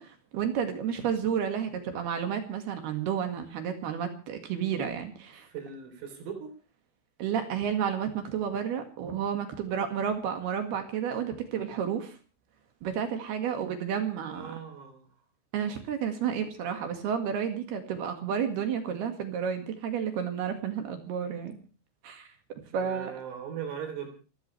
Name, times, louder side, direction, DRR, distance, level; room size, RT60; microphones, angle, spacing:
voice 1, 0.0-5.5 7.2-12.2 12.8-14.5 15.5-21.6 22.0-22.3 22.7-23.1, right 8 dB, 60° right, 6 dB, 3.4 m, -31 dB
voice 2, 5.4-6.5 14.3-15.1 22.7-24.1, right 7 dB, 80° right, 5 dB, 6.0 m, -39 dB
29.0 x 14.0 x 3.3 m, 0.35 s
omnidirectional pair, 5.8 m